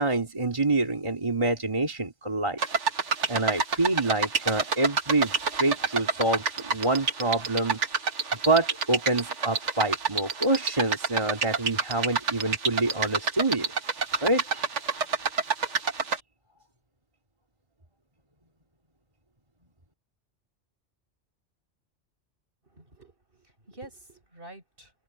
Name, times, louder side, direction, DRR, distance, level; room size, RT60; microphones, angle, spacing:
voice 1, 0.0-2.6 3.3-7.8 8.5-13.7 14.2-14.7, right 2 dB, 25° right, 2.5 m, -26 dB
sound 1, 2.6-16.2, right 5 dB, 80° right, 1.8 m, -28 dB
voice 2, 22.7-24.9, right 2 dB, 50° right, 6.3 m, -48 dB
open air
omnidirectional pair, 1.2 m